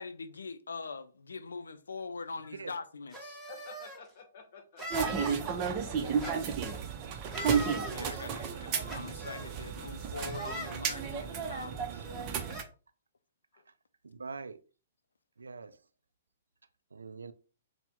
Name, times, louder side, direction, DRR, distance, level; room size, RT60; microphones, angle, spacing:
voice 1, 0.0-3.4 7.6-12.1, left 4 dB, 80° left, 0.4 m, -43 dB
sound 1, 3.1-4.0 4.8-5.4 6.2-6.7 7.3-8.0 8.9-9.5 10.2-10.7 11.6-11.7 12.0-12.6, equal, 5° right, 1.2 m, -42 dB
voice 2, 3.5-6.2 13.5-13.6, left 5 dB, 55° left, 0.8 m, -52 dB
sound 2, 4.9-12.6, right 6 dB, 35° right, 0.6 m, -33 dB
voice 3, 6.0-6.3 8.5-8.6 14.0-14.6 15.4-15.8 16.9-17.3, right 4 dB, 80° right, 0.4 m, -44 dB
4.2 x 2.1 x 3.5 m
figure-of-eight pair, 120°, 0 cm